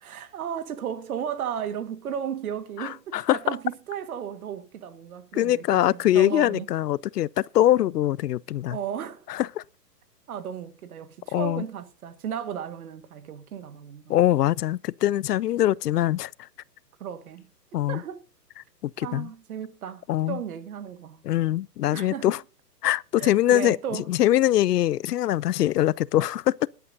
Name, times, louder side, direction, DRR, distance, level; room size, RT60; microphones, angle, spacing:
voice 1, 0.0-5.6 5.9-6.7 8.7-9.3 10.3-14.1 17.0-17.5 17.9-18.2 19.0-21.2 21.9-22.4 23.2-24.1, right 8 dB, 60° right, 1.8 m, -34 dB
voice 2, 2.8-3.4 5.3-8.8 9.3-9.6 11.3-11.6 14.1-16.3 17.7-18.0 18.8-19.3 20.1-20.4 21.2-22.4 22.8-26.7, left 13 dB, 70° left, 0.6 m, -23 dB
19.5 x 11.5 x 2.7 m
hypercardioid pair, 140°, 49 cm